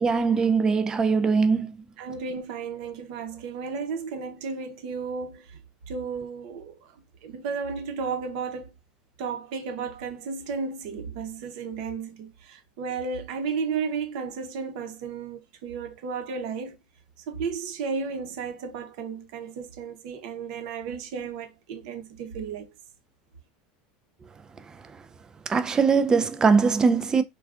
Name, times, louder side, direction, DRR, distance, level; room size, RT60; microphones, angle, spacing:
voice 1, 0.0-1.8 24.7-24.8 25.5-27.2, right 5 dB, 15° right, 0.3 m, -21 dB
voice 2, 2.0-5.6 5.9-6.9 7.2-8.7 9.2-16.8 17.3-22.7, right 5 dB, 65° right, 0.8 m, -33 dB
3.3 x 2.3 x 2.4 m
supercardioid pair, 140°, 4 cm